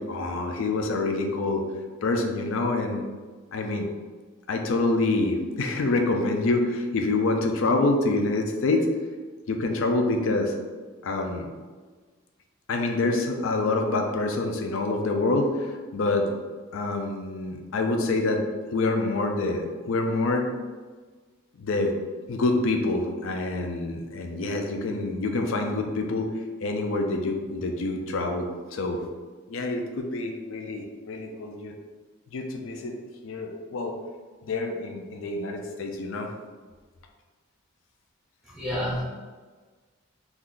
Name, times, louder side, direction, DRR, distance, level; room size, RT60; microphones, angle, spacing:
voice 1, 0.0-1.6 2.0-3.0 3.5-3.9 4.5-8.9 9.5-10.5 11.0-11.5 12.7-16.3 16.7-18.5 18.7-20.5 21.6-21.9 22.3-26.3 26.6-29.0 29.5-31.7 32.3-32.9 33.2-34.0 34.4-36.3, left 2 dB, 65° left, 4 dB, 0.4 m, -26 dB
voice 2, 38.4-39.0, equal, ahead, -7 dB, 0.6 m, -29 dB
2.5 x 2.3 x 3.6 m, 1.4 s
head